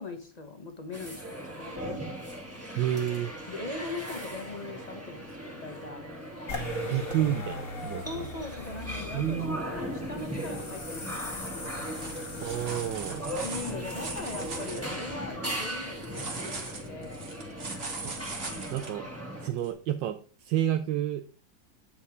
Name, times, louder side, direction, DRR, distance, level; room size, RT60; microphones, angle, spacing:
voice 1, 0.0-2.0 3.5-6.1 8.0-9.4 9.7-11.4 13.4-17.4, left 3 dB, 30° left, 6 dB, 0.8 m, -40 dB
sound 1, 0.9-19.5, equal, 10° right, 1.6 m, -38 dB
voice 2, 2.8-3.3 6.8-8.3 9.1-9.6 12.4-13.3 18.0-18.1 18.7-19.1 19.4-21.2, right 11 dB, 70° right, 7 dB, 1.2 m, -30 dB
sound 2, 6.5-14.7, left 3 dB, 55° left, 2.9 m, -41 dB
sound 3, 11.4-11.5 11.8-14.8 16.0-18.9 19.6-19.7, right 3 dB, 40° right, 1.8 m, -39 dB
8.8 x 5.6 x 4.8 m, 0.39 s
omnidirectional pair, 2.2 m